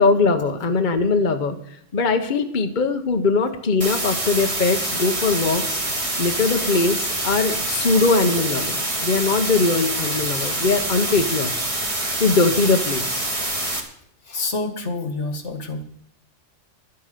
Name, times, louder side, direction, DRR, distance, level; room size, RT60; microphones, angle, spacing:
voice 1, 0.0-1.6 1.9-5.8 6.2-11.5 12.2-13.2, left 3 dB, 40° left, 5 dB, 1.1 m, -21 dB
sound 1, 3.8-13.8, right 1 dB, 25° right, 1.9 m, -26 dB
voice 2, 10.0-10.5 14.3-15.8, left 3 dB, 65° left, 7 dB, 1.9 m, -29 dB
12.0 x 9.6 x 6.7 m, 0.69 s
omnidirectional pair, 1.3 m